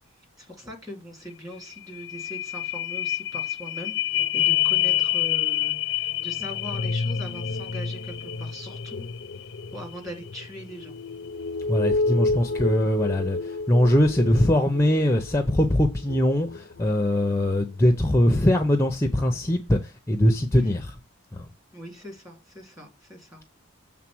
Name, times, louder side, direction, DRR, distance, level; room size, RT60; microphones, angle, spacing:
voice 1, 0.4-9.1 9.7-10.9 20.5-20.7 21.7-23.6, equal, 15° right, 2.5 m, -41 dB
sound 1, 1.3-1.4 1.7-17.6 18.1-18.2, left 7 dB, 55° left, 0.5 m, -28 dB
voice 2, 11.7-21.0 21.3-21.5, left 1 dB, 15° left, 0.6 m, -22 dB
7.4 x 3.7 x 6.1 m
head